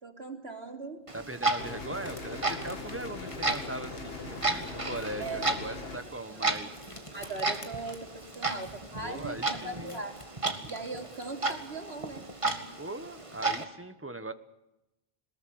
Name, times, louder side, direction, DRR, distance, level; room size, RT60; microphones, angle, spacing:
voice 1, 0.0-1.0 5.2-5.5 6.3-6.4 7.1-10.2 10.7-12.2, right 3 dB, 90° right, 1 dB, 3.8 m, -39 dB
voice 2, 1.1-6.7 9.0-10.0 12.8-14.3, right 2 dB, 15° right, 10 dB, 1.3 m, -39 dB
Clock, 1.1-13.6, right 2 dB, 30° right, 1.9 m, -34 dB
sound 1, 1.2-11.7, left 1 dB, 30° left, 2.4 m, -52 dB
sound 2, 1.6-6.0, left 3 dB, 70° left, 2.0 m, -41 dB
22.0 x 20.5 x 7.9 m, 0.93 s
omnidirectional pair, 1.0 m